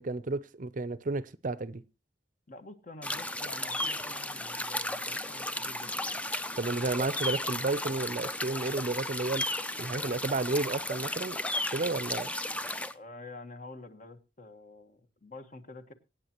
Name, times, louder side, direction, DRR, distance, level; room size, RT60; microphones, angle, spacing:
voice 1, 0.0-1.8 6.6-9.4 9.8-11.4 11.7-12.3, right 3 dB, 45° right, 17 dB, 0.6 m, -32 dB
voice 2, 2.5-6.2 12.9-15.9, left 2 dB, 40° left, 8 dB, 1.5 m, -48 dB
sound 1, 3.0-12.9, left 1 dB, 5° left, 0.6 m, -34 dB
24.5 x 8.9 x 3.0 m, 0.29 s
head